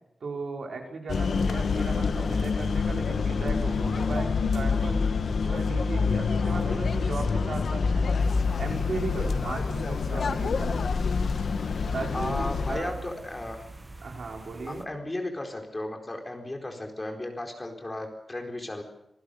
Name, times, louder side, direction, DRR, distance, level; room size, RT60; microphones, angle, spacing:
voice 1, 0.2-5.0 5.4-8.1 8.6-10.8 11.9-12.9 14.0-14.9, right 3 dB, 75° right, 1 dB, 5.2 m, -36 dB
sound 1, 1.1-12.8, left 5 dB, 80° left, 1.3 m, -27 dB
voice 2, 1.2-1.6 6.4-6.8 12.1-13.6 14.7-18.8, left 1 dB, 20° left, 3 dB, 4.3 m, -35 dB
sound 2, 8.2-14.8, right 2 dB, 25° right, 1.5 m, -44 dB
27.0 x 19.5 x 6.8 m, 0.81 s
wide cardioid pair, 160°, 0 cm